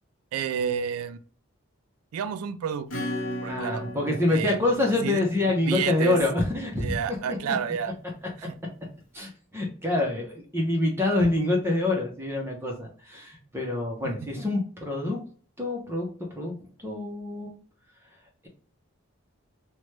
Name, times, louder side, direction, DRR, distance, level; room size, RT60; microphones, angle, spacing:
voice 1, 0.3-1.2 2.1-2.9 3.4-3.9 4.3-4.6 5.0-5.2 5.5-6.2 6.8-8.0 8.4-8.5 14.0-14.3, right 7 dB, 80° right, 12 dB, 0.3 m, -30 dB
Acoustic guitar / Strum, 2.9-7.2, left 1 dB, 60° left, 0.8 m, -37 dB
voice 2, 3.5-7.0 9.1-15.2 15.6-17.5, left 2 dB, 10° right, 0 dB, 0.5 m, -26 dB
3.0 x 2.1 x 3.1 m, 0.43 s
head